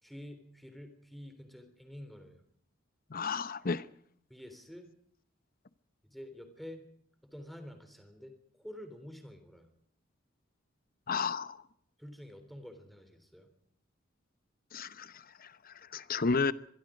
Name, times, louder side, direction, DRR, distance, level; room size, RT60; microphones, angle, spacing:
voice 1, 0.0-2.4 4.3-4.9 6.0-6.8 7.2-9.7 12.0-13.5, equal, ahead, 3.6 m, -48 dB
voice 2, 3.1-3.9 11.1-11.6 14.7-16.5, left 4 dB, 45° left, 0.9 m, -33 dB
25.0 x 22.0 x 5.1 m
head